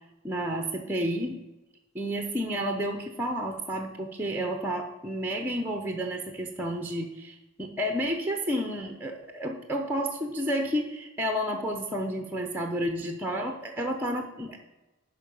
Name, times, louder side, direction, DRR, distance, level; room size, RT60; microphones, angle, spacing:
voice 1, 0.2-1.4 1.9-14.6, equal, 10° right, 3 dB, 0.7 m, -31 dB
11.5 x 5.0 x 5.4 m, 1.0 s
head